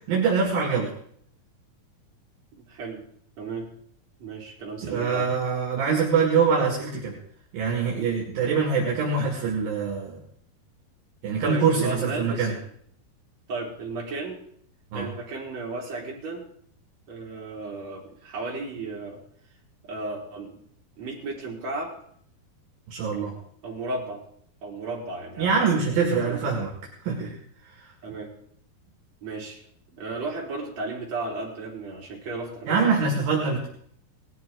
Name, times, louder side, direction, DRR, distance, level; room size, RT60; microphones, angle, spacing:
voice 1, 0.1-0.9 4.8-7.2 7.5-10.2 11.2-12.5 14.9-15.1 22.9-23.4 25.4-26.7 27.1-27.4 32.7-33.7, right 5 dB, 65° right, 0 dB, 3.7 m, -24 dB
voice 2, 2.6-3.0 3.4-3.7 4.2-5.3 11.4-12.6 13.5-14.4 14.9-16.5 17.1-19.2 19.9-20.5 21.0-21.9 23.6-24.2 24.6-26.0 26.2-26.5 28.0-28.3 29.2-29.6 29.9-33.2, right 3 dB, 45° right, -3 dB, 4.8 m, -34 dB
19.0 x 13.5 x 3.8 m, 0.63 s
omnidirectional pair, 4.6 m